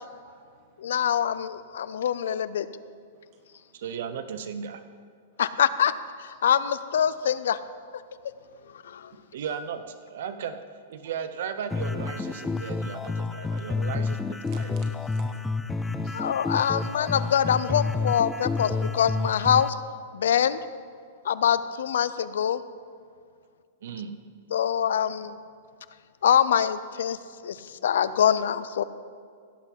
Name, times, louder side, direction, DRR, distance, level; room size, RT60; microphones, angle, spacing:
voice 1, 0.2-1.1 3.1-3.8 5.3-5.4 6.3-6.4 8.4-9.5 12.5-12.9 13.3-13.6 14.4-17.1, right 4 dB, 40° right, 3 dB, 1.9 m, -57 dB
voice 2, 0.8-2.7 5.4-5.9 6.2-7.6 8.8-9.1 16.1-19.8 20.1-20.6 21.2-22.6 24.5-25.4 26.2-27.2 27.4-28.8, left 9 dB, 80° left, 15 dB, 0.5 m, -24 dB
voice 3, 3.7-4.8 9.3-10.6 10.9-14.8 23.8-24.4, right 7 dB, 70° right, 10 dB, 0.6 m, -36 dB
sound 1, 11.7-19.7, left 3 dB, 10° left, 0.4 m, -29 dB
16.5 x 5.9 x 5.9 m, 2.1 s
hypercardioid pair, 150°, 0 cm